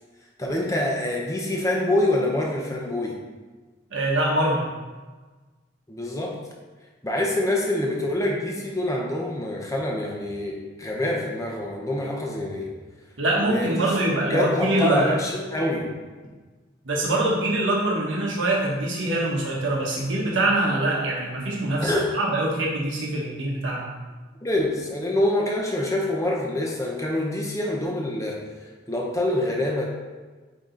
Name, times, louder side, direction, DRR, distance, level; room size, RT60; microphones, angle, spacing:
voice 1, 0.4-3.1 5.9-6.4 7.0-12.7 13.4-15.9 21.8-22.1 24.4-28.4 28.9-29.9, left 1 dB, 15° left, -1 dB, 0.7 m, -26 dB
voice 2, 3.9-4.7 13.2-15.1 16.8-23.9, right 1 dB, 85° right, -3 dB, 1.2 m, -24 dB
8.6 x 2.9 x 3.9 m, 1.3 s
head